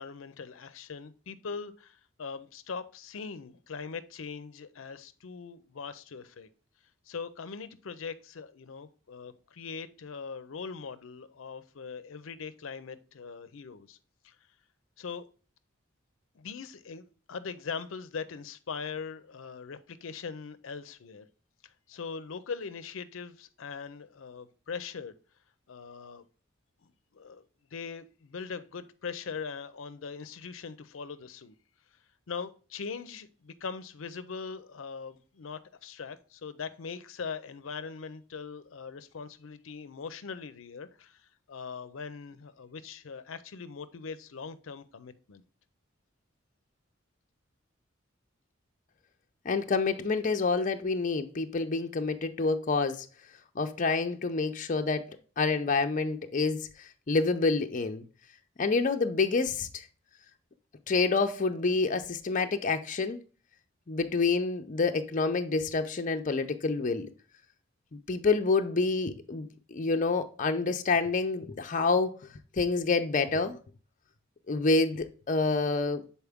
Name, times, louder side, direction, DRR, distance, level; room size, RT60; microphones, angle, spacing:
voice 1, 0.0-6.5 7.1-14.0 14.2-14.4 15.0-15.3 16.4-21.3 21.9-25.1 25.7-26.2 26.8-27.4 27.7-31.5 32.3-45.4, left 5 dB, 85° left, 0.5 m, -41 dB
voice 2, 49.4-53.1 53.6-58.0 58.6-59.9 60.9-63.2 63.9-67.1 67.9-73.6 74.5-76.0, left 4 dB, 40° left, 0.5 m, -28 dB
6.9 x 4.2 x 3.5 m
head